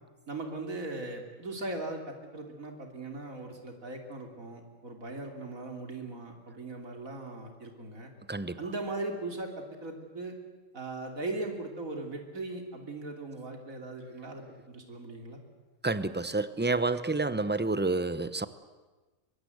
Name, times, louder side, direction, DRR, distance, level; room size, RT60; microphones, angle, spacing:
voice 1, 0.3-8.1 8.6-10.4 10.7-15.4, right 2 dB, 75° right, 3 dB, 3.6 m, -39 dB
voice 2, 15.8-18.5, right 3 dB, 10° right, 13 dB, 0.6 m, -29 dB
23.5 x 22.5 x 8.0 m, 1.2 s
omnidirectional pair, 1.4 m